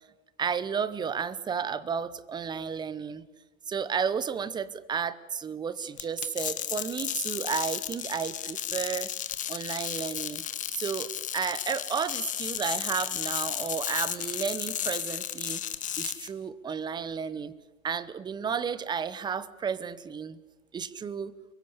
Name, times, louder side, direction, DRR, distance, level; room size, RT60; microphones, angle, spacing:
voice 1, 0.4-3.3 3.7-9.1 9.5-10.4 10.7-15.6 16.0-17.5 17.8-20.4 20.7-21.3, right 6 dB, 10° right, 17 dB, 0.8 m, -32 dB
sound 1, 6.0-16.3, left 10 dB, 20° left, 1.3 m, -34 dB
24.5 x 21.5 x 8.3 m, 1.2 s
hypercardioid pair, 120°, 41 cm